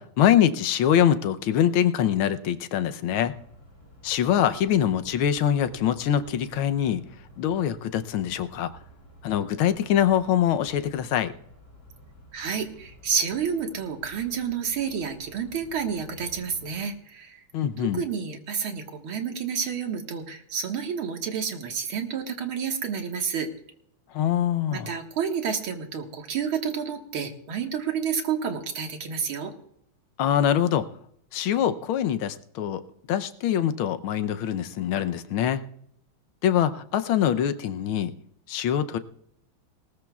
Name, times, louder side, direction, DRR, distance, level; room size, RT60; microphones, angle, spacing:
voice 1, 0.0-3.3 4.0-7.1 7.4-8.7 9.2-11.3 17.5-18.0 24.1-24.9 30.2-30.9 31.3-32.8 33.1-35.7 36.4-38.1 38.5-39.0, left 10 dB, 80° left, 11 dB, 1.6 m, -24 dB
sound 1, 3.1-16.8, equal, 45° left, 7.4 m, -51 dB
voice 2, 12.3-17.4 17.8-23.5 24.7-29.5, right 7 dB, 80° right, 4 dB, 2.4 m, -30 dB
19.5 x 19.5 x 2.4 m, 0.72 s
omnidirectional pair, 2.3 m